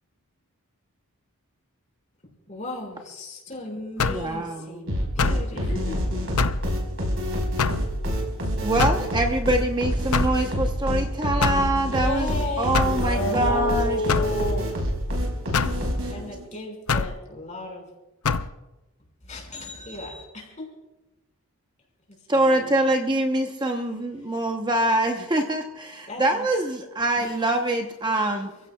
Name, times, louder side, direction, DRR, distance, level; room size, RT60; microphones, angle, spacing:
voice 1, 2.5-5.9 11.9-12.8 13.3-14.3 15.7-17.9 19.2-20.7 22.3-22.7 26.1-26.5 27.2-27.3, left 2 dB, 35° left, 5.4 m, -36 dB
sound 1, 4.0-4.3 5.2-5.5 6.4-6.7 7.6-7.9 8.8-9.1 10.1-10.4 11.4-11.7 12.7-13.0 14.1-14.3 15.5-15.8 16.9-17.2 18.2-18.5, left 5 dB, 85° left, 0.7 m, -24 dB
voice 2, 4.1-4.8 5.5-5.8 8.6-14.0 16.0-16.1 22.3-28.5, right 1 dB, 20° right, 0.8 m, -24 dB
sound 2, 4.9-16.5, equal, 65° right, 4.7 m, -27 dB
voice 3, 5.5-6.4 12.9-14.7 15.0-15.5, left 1 dB, 55° left, 2.2 m, -30 dB
29.0 x 16.0 x 2.3 m
head